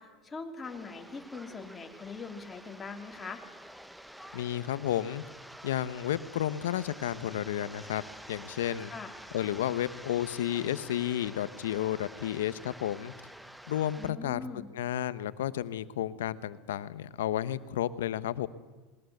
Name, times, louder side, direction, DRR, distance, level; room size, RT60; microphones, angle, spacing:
voice 1, 0.0-3.4 8.8-9.1 14.0-14.7, left 4 dB, 20° left, 4 dB, 3.0 m, -42 dB
sound 1, 0.6-14.1, equal, ahead, 1.0 m, -49 dB
voice 2, 4.3-5.2 5.6-8.0 8.3-8.9 9.3-13.1 13.7-18.5, left 11 dB, 85° left, 15 dB, 1.0 m, -32 dB
20.0 x 20.0 x 8.0 m, 1.3 s
supercardioid pair, 105°, 0 cm